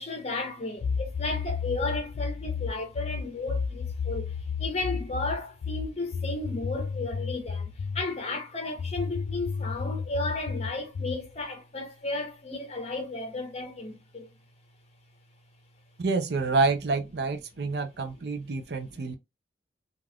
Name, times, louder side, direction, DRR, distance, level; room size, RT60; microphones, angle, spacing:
voice 1, 0.0-14.3 17.6-17.8 18.7-19.2, left 2 dB, 35° left, 1.0 m, -34 dB
sound 1, 0.8-8.1 8.8-11.3, left 5 dB, 80° left, 0.4 m, -32 dB
voice 2, 16.0-19.1, right 3 dB, 65° right, 0.5 m, -28 dB
3.3 x 2.5 x 2.3 m
head